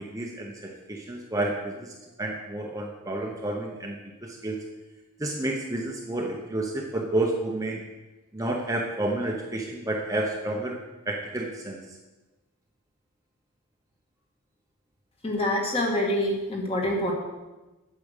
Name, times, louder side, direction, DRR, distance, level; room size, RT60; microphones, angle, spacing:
voice 1, 0.0-1.9 2.2-4.6 5.2-7.8 8.3-10.7 11.1-11.8, right 1 dB, 15° right, -1 dB, 0.9 m, -30 dB
voice 2, 15.2-17.1, left 1 dB, 25° left, -1 dB, 1.8 m, -26 dB
8.7 x 7.6 x 6.6 m, 1.1 s
head